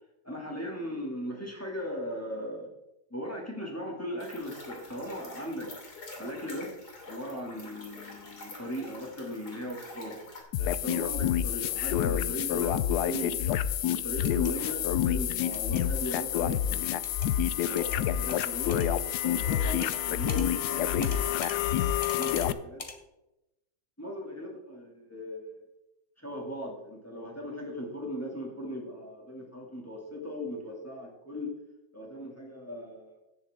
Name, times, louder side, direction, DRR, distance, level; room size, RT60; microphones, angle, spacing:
voice 1, 0.2-2.7 3.1-5.7 6.2-6.7 7.1-10.2 10.8-13.4 13.8-17.2 17.5-18.8 19.2-21.5 22.1-22.8 24.0-25.6 26.2-31.5 31.9-33.2, equal, 5° left, -1 dB, 2.4 m, -38 dB
sound 1, 4.2-10.4, left 2 dB, 50° left, 3.3 m, -47 dB
sound 2, 10.5-22.5, left 11 dB, 80° left, 0.9 m, -28 dB
sound 3, 14.2-14.5 15.5-15.8 17.0-17.3 17.8-18.0 18.3-18.9 19.8-20.0 20.3-20.5 21.0-21.6 22.0-22.5 22.8-23.0, left 3 dB, 30° left, 0.7 m, -41 dB
17.0 x 7.0 x 3.7 m, 0.93 s
omnidirectional pair, 2.3 m